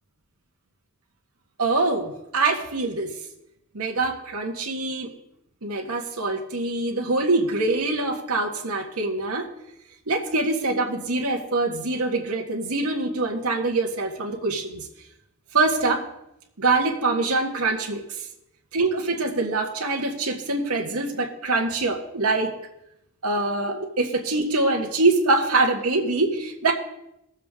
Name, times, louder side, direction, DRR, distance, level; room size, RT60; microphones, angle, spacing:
voice 1, 1.6-3.1 3.7-5.1 5.6-9.5 10.1-14.8 15.5-16.0 16.6-18.0 18.7-22.5 23.2-26.7, right 3 dB, 90° right, 2 dB, 1.6 m, -24 dB
19.5 x 7.4 x 3.7 m, 0.83 s
head